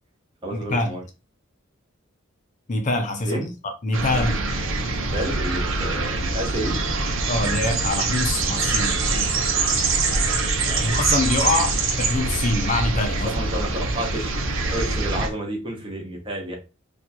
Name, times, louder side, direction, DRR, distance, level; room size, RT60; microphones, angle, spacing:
voice 1, 0.4-1.0 3.3-3.5 5.1-6.8 10.6-10.9 13.2-14.3 14.7-16.6, right 1 dB, 25° right, 1.0 m, -30 dB
voice 2, 2.7-3.4 3.8-4.4 7.3-9.0 10.8-13.3, left 2 dB, 40° left, 0.6 m, -24 dB
sound 1, 3.9-15.3, right 3 dB, 75° right, 0.8 m, -24 dB
2.9 x 2.4 x 4.3 m
head